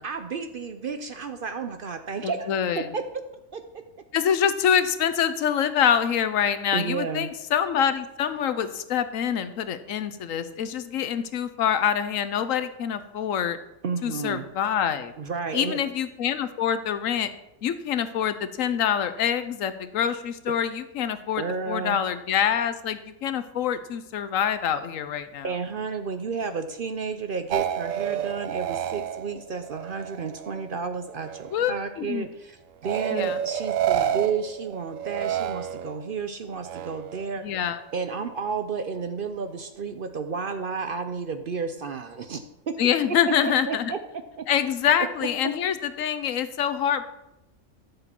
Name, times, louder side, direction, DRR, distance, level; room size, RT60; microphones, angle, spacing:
voice 1, 0.0-2.5 2.9-3.0 3.5-3.6 6.7-7.3 13.8-14.5 15.2-15.8 21.4-22.0 25.4-37.4 37.9-42.7 43.1-43.2 43.4-44.0 44.4-44.5, right 5 dB, 55° right, 8 dB, 0.7 m, -32 dB
voice 2, 2.2-2.9 4.1-13.6 14.0-15.1 15.5-17.3 17.6-25.5 31.5-32.3 33.1-33.4 37.4-37.8 42.8-43.9 44.5-47.0, left 8 dB, 80° left, 12 dB, 1.1 m, -25 dB
sound 1, 27.5-30.7 31.0-31.9 32.8-36.1 36.6-37.3, right 10 dB, 75° right, 1.0 m, -30 dB
12.0 x 6.8 x 4.4 m, 0.90 s
omnidirectional pair, 1.4 m